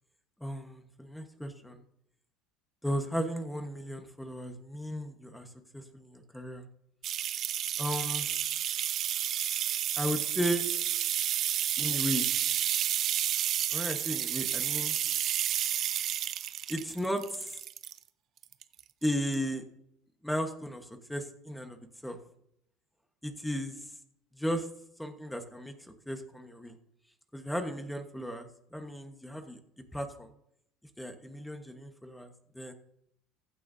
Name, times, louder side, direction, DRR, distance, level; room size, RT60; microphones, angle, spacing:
voice 1, 0.4-1.8 2.8-6.7 7.8-8.3 10.0-10.6 11.8-12.3 13.7-15.0 16.7-17.6 19.0-19.6 20.2-22.2 23.2-23.9 24.3-24.7 25.0-25.7 26.1-26.7 27.3-29.6 29.9-30.3 31.0-32.7, equal, 5° left, 6 dB, 1.3 m, -35 dB
sound 1, 7.0-18.0 18.4-19.0 19.3-19.4, right 11 dB, 45° right, 0.5 m, -31 dB
15.0 x 13.0 x 2.7 m, 0.74 s
cardioid pair, 145°, 0 cm